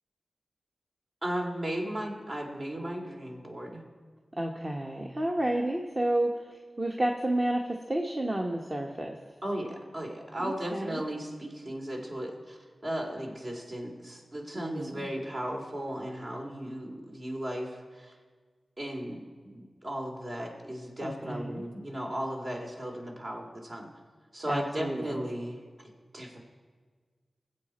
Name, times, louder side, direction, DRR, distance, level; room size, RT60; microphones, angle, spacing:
voice 1, 1.2-3.8 9.4-18.2 18.8-23.9 24.3-26.4, right 1 dB, 55° right, 0 dB, 2.6 m, -36 dB
voice 2, 4.3-9.2 10.4-11.0 14.5-15.0 21.0-21.6 24.5-25.0, right 1 dB, 35° right, 0 dB, 1.1 m, -31 dB
21.0 x 7.9 x 4.3 m, 1.5 s
cardioid pair, 45°, 0 cm